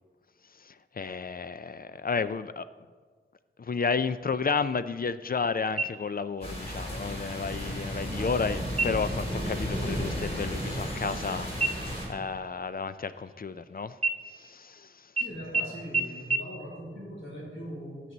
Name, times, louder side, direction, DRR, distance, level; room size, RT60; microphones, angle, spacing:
voice 1, 0.6-2.7 3.6-14.0 14.3-15.1, left 5 dB, 50° left, 13 dB, 0.4 m, -32 dB
sound 1, 5.8-6.4 6.8-6.9 7.5-8.0 8.7-9.2 9.6-9.9 10.2-11.3 11.6-13.6 14.0-14.8 15.2-15.3 15.5-15.6 15.9-16.0 16.3-16.4, right 4 dB, 35° right, 0.7 m, -32 dB
sound 2, 6.4-12.1, equal, 30° left, 3.5 m, -33 dB
voice 2, 15.2-18.1, equal, 80° left, -6 dB, 3.6 m, -40 dB
13.5 x 8.2 x 4.0 m, 1.5 s
wide cardioid pair, 70°, 20 cm